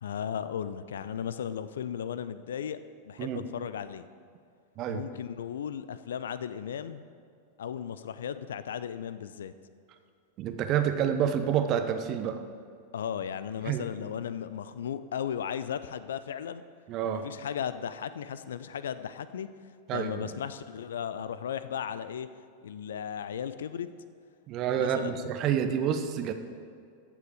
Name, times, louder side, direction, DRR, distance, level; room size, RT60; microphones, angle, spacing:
voice 1, 0.0-2.8 3.1-4.1 4.9-7.1 7.6-9.5 12.9-16.6 17.0-19.5 19.9-22.3 22.6-23.9 24.7-25.2, left 8 dB, 65° left, 13 dB, 0.5 m, -36 dB
voice 2, 10.4-12.4 13.7-13.9 16.9-17.2 19.9-20.3 24.5-26.3, right 9 dB, 35° right, 8 dB, 0.9 m, -28 dB
14.5 x 7.0 x 4.9 m, 2.3 s
figure-of-eight pair, 90°, 0 cm